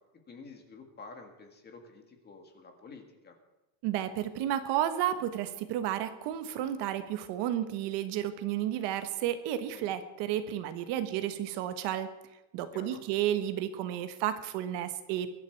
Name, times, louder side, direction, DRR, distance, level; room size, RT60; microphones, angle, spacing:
voice 1, 0.3-3.4 9.7-9.9 12.7-13.0, left 4 dB, 20° left, 4 dB, 1.8 m, -49 dB
voice 2, 3.8-12.1 12.5-15.3, right 11 dB, 55° right, 10 dB, 1.3 m, -32 dB
23.0 x 12.0 x 4.6 m, 0.99 s
cardioid pair, 180°, 49 cm